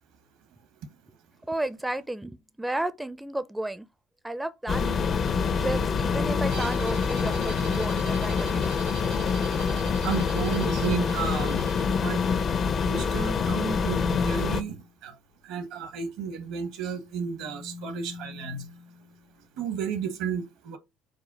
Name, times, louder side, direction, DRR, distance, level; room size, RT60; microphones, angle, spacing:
voice 1, 1.5-3.9 4.2-5.0 5.6-8.7, right 1 dB, 10° right, 0.4 m, -32 dB
sound 1, 4.7-14.6, left 5 dB, 45° left, 0.5 m, -26 dB
Bowed string instrument, 6.5-12.0, right 6 dB, 90° right, 1.4 m, -44 dB
voice 2, 10.0-11.7 12.0-12.2 12.8-15.1 15.4-18.7 19.6-20.8, right 6 dB, 75° right, 1.0 m, -32 dB
sound 2, 13.2-14.9 16.8-19.2, left 4 dB, 75° left, 1.6 m, -39 dB
4.9 x 2.1 x 4.1 m
hypercardioid pair, 70°, 0 cm